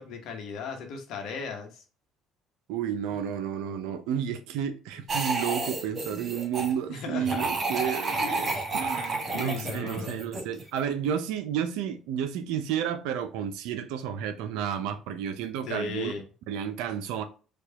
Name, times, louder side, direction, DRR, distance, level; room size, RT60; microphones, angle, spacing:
voice 1, 0.0-1.8 3.1-3.2 6.9-7.4 8.2-8.6 9.3-10.3 15.7-16.2, left 5 dB, 60° left, 1.0 m, -37 dB
voice 2, 2.7-16.1 16.5-17.2, right 9 dB, 70° right, 0.4 m, -31 dB
sound 1, 5.1-6.7 7.2-10.8, right 3 dB, 40° right, 1.2 m, -31 dB
4.6 x 2.3 x 2.8 m
hypercardioid pair, 55°, 0 cm